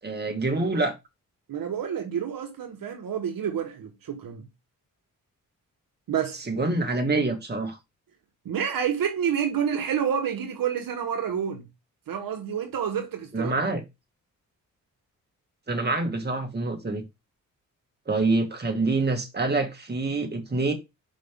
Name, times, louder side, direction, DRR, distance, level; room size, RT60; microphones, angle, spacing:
voice 1, 0.0-0.9 6.5-7.8 13.3-13.8 15.7-17.0 18.1-20.7, right 3 dB, 30° right, 2.1 m, -26 dB
voice 2, 1.5-4.5 6.1-6.4 8.4-11.7 12.1-13.5, right 8 dB, 75° right, 1.3 m, -29 dB
5.4 x 5.1 x 3.6 m
cardioid pair, 70°, 34 cm